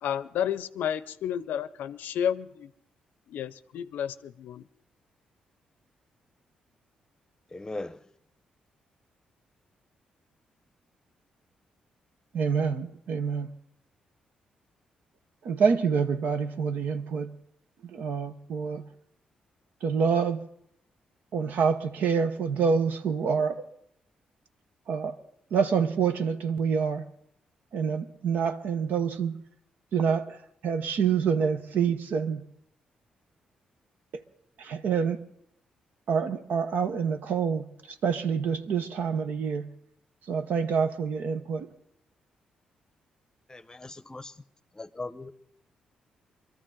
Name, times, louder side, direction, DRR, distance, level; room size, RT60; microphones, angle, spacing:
voice 1, 0.0-2.7 3.3-4.7, left 9 dB, 75° left, 0.5 m, -31 dB
voice 2, 7.5-8.0 43.5-44.3 44.8-45.3, left 2 dB, 20° left, 0.8 m, -39 dB
voice 3, 12.3-13.5 15.4-17.3 17.8-18.9 19.8-20.4 21.3-23.6 24.9-25.2 25.5-27.0 27.7-29.4 29.9-30.4 30.6-32.4 34.1-34.2 34.6-35.2 36.1-39.7 40.3-41.7, right 6 dB, 70° right, 0.9 m, -27 dB
22.0 x 13.5 x 3.8 m
supercardioid pair, 55°, 3 cm